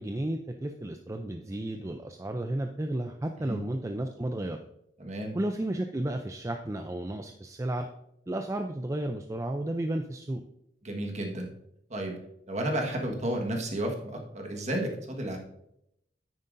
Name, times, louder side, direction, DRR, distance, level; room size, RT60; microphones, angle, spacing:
voice 1, 0.0-4.6 5.3-7.9 8.3-10.4, right 1 dB, 15° right, 5 dB, 0.4 m, -33 dB
voice 2, 5.0-5.4 10.8-11.5 11.9-12.2 12.5-15.4, right 1 dB, 40° right, 2 dB, 1.5 m, -32 dB
9.6 x 9.1 x 2.6 m, 0.78 s
head